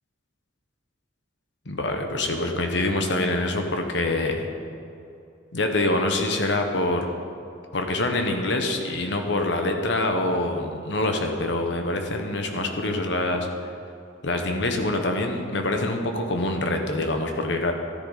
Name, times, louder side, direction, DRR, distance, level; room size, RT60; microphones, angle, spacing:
voice 1, 1.7-4.5 5.5-7.1 7.7-13.5 14.2-17.7, left 2 dB, 60° left, 4 dB, 1.2 m, -25 dB
13.5 x 10.0 x 4.1 m, 2.7 s
head